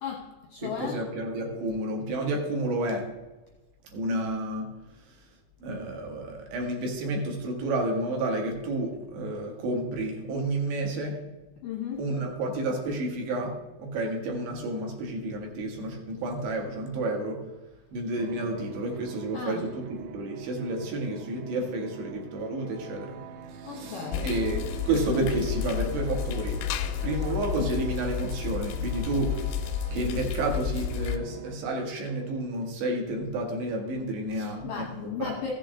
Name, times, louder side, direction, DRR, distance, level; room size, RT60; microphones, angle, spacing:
voice 1, 0.0-1.0 11.6-12.0 19.3-19.7 23.6-24.3 34.3-35.5, left 7 dB, 75° left, -1 dB, 2.0 m, -36 dB
voice 2, 0.6-3.1 3.9-4.7 5.1-5.2 5.6-11.2 12.0-17.4 17.9-23.2 23.5-24.6 24.9-26.6 27.0-29.4 29.9-35.4, right 2 dB, 70° right, 1 dB, 3.3 m, -30 dB
sound 1, 18.2-31.6, right 7 dB, 85° right, 3.4 m, -44 dB
sound 2, 24.1-31.2, left 8 dB, 90° left, 3.2 m, -31 dB
15.5 x 7.5 x 3.7 m, 1.1 s
omnidirectional pair, 5.5 m